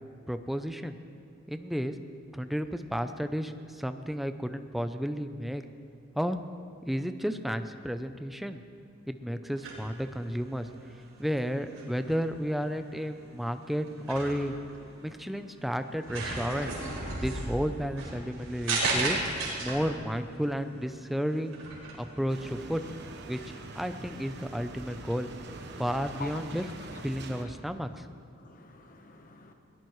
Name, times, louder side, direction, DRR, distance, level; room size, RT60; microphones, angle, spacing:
voice 1, 0.3-1.0 1.5-1.9 2.3-5.6 6.2-6.4 6.9-8.6 9.1-10.7 11.2-14.6 15.0-16.7 17.2-19.2 19.6-21.6 22.0-22.8 23.3-23.4 23.8-25.3 25.8-26.7 27.0-28.1, equal, ahead, 8 dB, 0.6 m, -32 dB
sound 1, 9.5-24.5, right 2 dB, 85° right, 4.7 m, -37 dB
sound 2, 22.3-27.4, right 2 dB, 60° right, 1.1 m, -44 dB
voice 2, 25.9-26.3 26.6-27.0 27.3-27.5 28.4-29.5, left 4 dB, 45° left, 5 dB, 1.1 m, -47 dB
22.5 x 18.0 x 3.2 m, 2.4 s
head